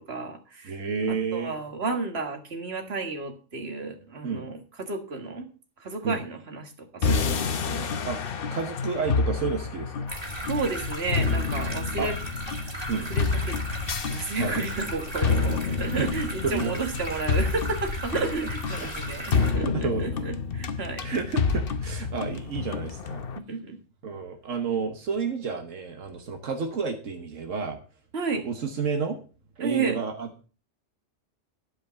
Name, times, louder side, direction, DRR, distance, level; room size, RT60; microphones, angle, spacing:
voice 1, 0.0-0.8 1.1-5.5 5.8-7.9 10.5-12.1 13.1-13.6 14.1-21.1 23.5-23.8 28.1-28.4 29.6-30.0, right 4 dB, 55° right, 4 dB, 2.0 m, -32 dB
voice 2, 0.6-1.5 4.2-4.5 6.0-6.2 8.0-8.2 8.5-10.1 12.0-12.1 12.9-13.1 14.4-14.6 16.0-16.1 16.4-16.8 18.8-18.9 19.6-20.0 21.0-23.2 24.0-27.8 28.4-29.2 29.6-30.3, right 5 dB, 80° right, 4 dB, 1.5 m, -30 dB
sound 1, 7.0-23.4, left 5 dB, 50° left, 0.9 m, -29 dB
sound 2, 10.1-19.5, right 1 dB, 20° right, 2.7 m, -36 dB
12.0 x 5.1 x 6.8 m, 0.37 s
omnidirectional pair, 1.3 m